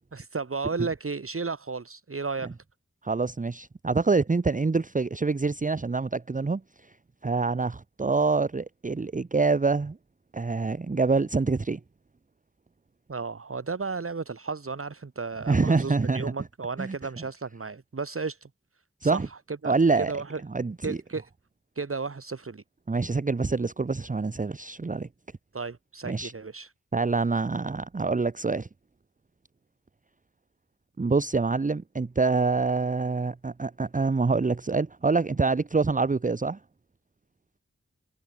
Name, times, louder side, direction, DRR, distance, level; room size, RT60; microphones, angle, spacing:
voice 1, 0.1-2.5 13.1-18.5 19.0-20.4 20.8-21.3 21.8-22.6 25.5-26.7, right 4 dB, 50° right, 1.8 m, -34 dB
voice 2, 3.0-6.6 7.2-10.0 10.3-11.8 15.5-16.3 16.8-16.9 19.0-19.3 19.6-20.1 20.5-21.0 22.9-25.1 26.0-26.3 26.9-28.7 31.0-36.6, right 4 dB, 25° right, 0.8 m, -26 dB
wide cardioid pair, 55°, 29 cm